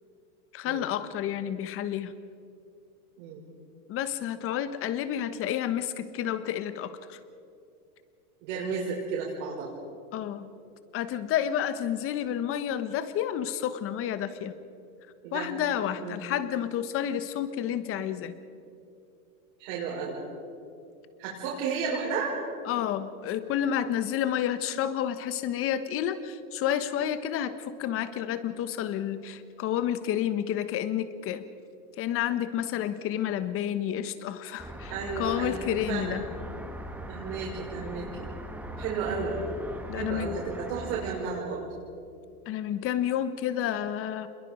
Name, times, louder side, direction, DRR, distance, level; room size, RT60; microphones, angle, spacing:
voice 1, 0.5-2.1 3.9-7.2 10.1-10.5 10.9-14.5 15.3-18.3 22.7-31.4 32.0-36.3 39.9-40.3 42.5-44.3, left 10 dB, 30° left, 12 dB, 1.3 m, -30 dB
voice 2, 8.4-9.7 15.2-15.5 16.0-16.2 19.6-20.2 21.2-22.3 34.9-35.6 35.9-36.2 37.1-38.2 38.8-39.4 39.9-41.6, right 5 dB, 55° right, -5 dB, 5.8 m, -33 dB
sound 1, 34.6-41.4, right 1 dB, 5° right, 1.4 m, -40 dB
27.0 x 22.0 x 5.3 m, 2.6 s
hypercardioid pair, 135°, 45 cm